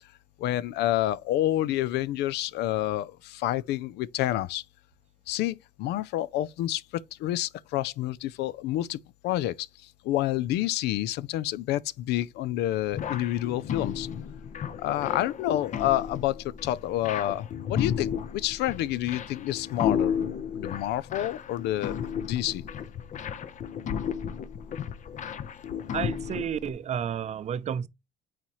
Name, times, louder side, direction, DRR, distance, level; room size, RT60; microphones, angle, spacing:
voice 1, 0.4-4.6 5.3-14.1 14.8-20.1 20.5-22.6, left 14 dB, 80° left, 0.5 m, -29 dB
sound 1, 12.9-26.7, left 8 dB, 45° left, 0.7 m, -33 dB
voice 2, 25.9-27.9, right 8 dB, 40° right, 0.5 m, -31 dB
8.6 x 4.2 x 3.0 m
cardioid pair, 110°, 17 cm